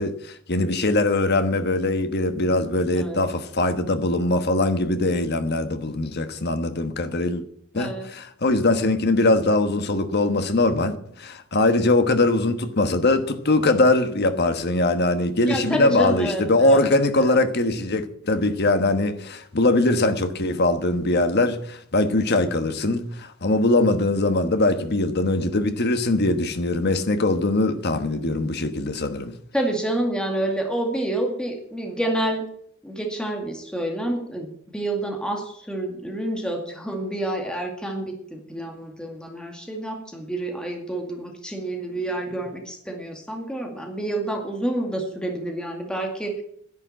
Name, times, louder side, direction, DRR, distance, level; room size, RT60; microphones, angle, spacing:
voice 1, 0.0-7.4 7.7-29.3, left 2 dB, 50° left, 1.2 m, -22 dB
voice 2, 7.8-8.1 15.5-16.9 17.1-17.4 29.5-32.4 32.8-46.4, right 1 dB, 5° left, 2.1 m, -28 dB
11.0 x 11.0 x 7.4 m
head